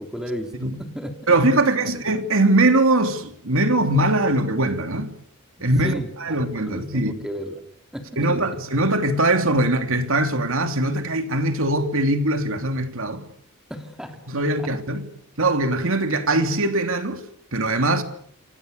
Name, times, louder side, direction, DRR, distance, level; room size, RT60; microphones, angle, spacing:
voice 1, 0.0-1.2 1.8-2.0 5.8-6.4 6.7-7.6 7.9-8.6 13.7-14.2 14.6-14.7, equal, 5° right, 3.2 m, -34 dB
voice 2, 1.3-5.1 5.6-7.1 8.2-13.3 14.3-15.1 15.4-17.2 17.5-18.0, right 2 dB, 65° right, 3.0 m, -21 dB
28.5 x 26.5 x 6.8 m
head